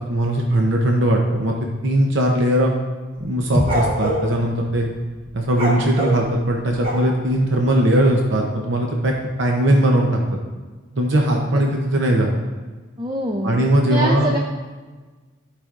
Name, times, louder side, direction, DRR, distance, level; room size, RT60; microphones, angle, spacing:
voice 1, 0.1-1.5 1.8-2.7 3.2-4.9 5.3-9.1 9.4-10.2 10.9-12.3 13.4-14.3, right 1 dB, 65° right, 1 dB, 0.7 m, -19 dB
sound 1, 3.2-4.3 5.5-7.3, equal, 45° right, 2.1 m, -24 dB
sound 2, 3.5-7.5 7.8-7.9, left 1 dB, 20° left, 1.1 m, -31 dB
voice 2, 13.0-13.6 13.9-14.4, right 1 dB, 20° right, 1 dB, 0.4 m, -24 dB
13.5 x 5.0 x 2.5 m, 1.3 s
head